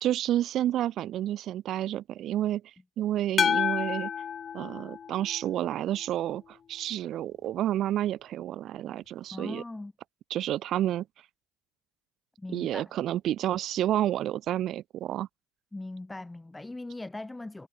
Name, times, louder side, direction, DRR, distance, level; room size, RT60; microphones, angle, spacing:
voice 1, 0.0-4.1 4.5-9.6 10.3-11.0 12.5-15.3, right 12 dB, 50° right, 0.5 m, -30 dB
sound 1, 3.4-5.6, left 7 dB, 35° left, 0.3 m, -29 dB
voice 2, 9.3-9.9 12.4-12.9 15.7-17.7, left 2 dB, 10° left, 1.5 m, -39 dB
hypercardioid pair, 80°, 0 cm